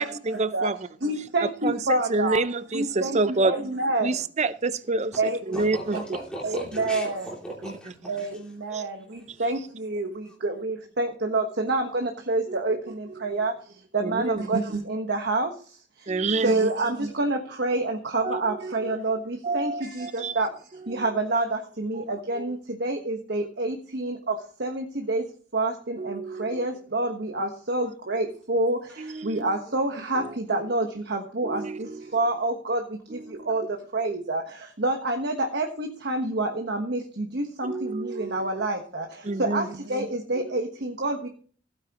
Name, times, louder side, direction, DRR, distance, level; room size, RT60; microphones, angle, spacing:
voice 1, 0.0-0.8 1.4-3.5 4.0-5.1 5.5-6.0 7.6-7.7 8.7-8.9 12.5-12.8 14.0-14.4 16.1-16.7 18.2-18.9 19.4-20.4 20.9-21.1 21.9-22.0 26.0-26.7 27.8-27.9 29.0-29.6 30.2-30.3 31.4-32.1 33.1-33.5 37.6-38.5 39.2-39.7 40.4-40.5, right 3 dB, 35° right, 0.6 m, -28 dB
voice 2, 1.0-2.4 2.7-4.1 5.2-5.6 5.9-6.0 6.4-7.3 8.1-15.5 16.0-16.1 16.4-20.5 20.9-25.3 25.5-41.3, right 2 dB, 60° right, 1.3 m, -28 dB
voice 3, 5.5-8.4 10.3-10.4 29.7-29.8, equal, 5° left, 2.8 m, -38 dB
16.0 x 9.1 x 3.0 m
head